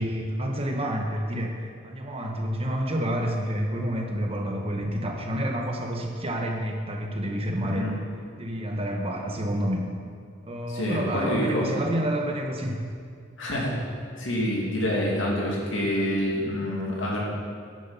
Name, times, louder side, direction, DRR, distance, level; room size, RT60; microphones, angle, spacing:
voice 1, 0.0-7.9 8.4-9.9 10.4-12.8, equal, 30° right, 1 dB, 1.1 m, -29 dB
voice 2, 10.7-11.7 13.4-13.7 14.2-17.2, left 1 dB, 70° left, -3 dB, 2.5 m, -27 dB
10.0 x 7.3 x 5.7 m, 2.3 s
head